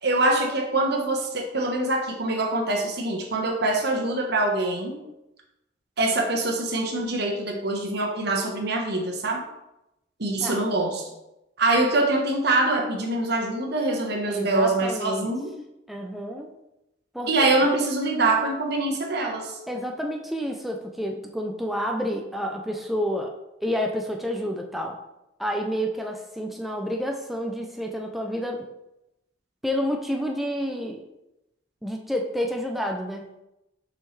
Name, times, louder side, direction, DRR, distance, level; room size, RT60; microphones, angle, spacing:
voice 1, 0.0-5.0 6.0-9.4 10.2-11.1 11.6-15.5 17.3-19.6, right 2 dB, 65° right, 2 dB, 1.2 m, -24 dB
voice 2, 14.3-15.3 15.9-16.5 17.1-17.6 19.7-23.3 23.6-25.0 25.4-28.6 29.6-31.0 31.8-33.3, equal, ahead, 2 dB, 0.5 m, -29 dB
7.1 x 5.6 x 3.3 m, 0.90 s
head